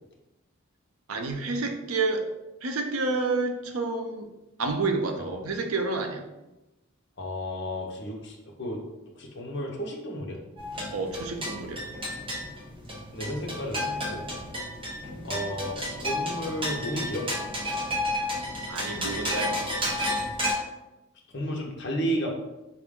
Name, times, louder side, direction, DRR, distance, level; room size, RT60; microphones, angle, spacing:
voice 1, 1.1-2.2 2.6-4.3 4.6-6.2 10.9-11.8 18.7-19.6, right 3 dB, 85° right, 4 dB, 0.6 m, -29 dB
voice 2, 7.2-8.8 9.2-10.4 13.1-14.3 15.2-15.8 16.0-17.3 21.3-22.3, equal, 55° left, 0 dB, 0.8 m, -32 dB
sound 1, 10.6-20.5, left 1 dB, 25° right, 0.9 m, -32 dB
4.9 x 2.5 x 3.6 m, 0.99 s
head